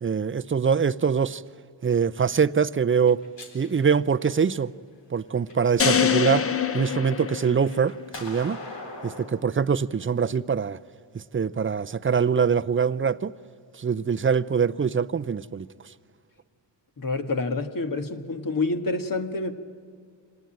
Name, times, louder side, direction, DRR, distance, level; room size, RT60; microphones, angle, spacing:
voice 1, 0.0-1.4 1.8-3.2 3.5-4.7 5.1-6.5 6.7-8.6 9.0-10.8 11.1-13.3 13.8-15.7, right 6 dB, 30° right, 0.5 m, -23 dB
sound 1, 3.0-4.7 5.3-6.1 6.5-9.3, left 2 dB, 75° left, 3.9 m, -42 dB
sound 2, 5.8-8.1, left 7 dB, 30° left, 0.8 m, -25 dB
voice 2, 17.0-19.5, left 3 dB, 50° left, 1.6 m, -28 dB
25.5 x 19.0 x 8.9 m
cardioid pair, 75°, 44 cm